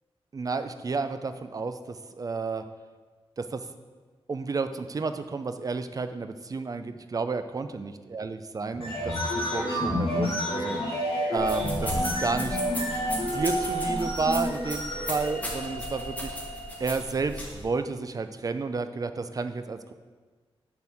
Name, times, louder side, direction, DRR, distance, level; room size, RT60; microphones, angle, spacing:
voice 1, 0.3-2.6 3.4-3.6 4.3-12.6 13.1-16.4 16.8-19.9, right 4 dB, 35° right, 9 dB, 0.4 m, -31 dB
sound 1, 8.7-17.0, equal, 75° left, 2.3 m, -30 dB
sound 2, 11.4-17.6, equal, 15° left, 1.4 m, -36 dB
6.9 x 4.4 x 6.3 m, 1.4 s
wide cardioid pair, 150°, 10 cm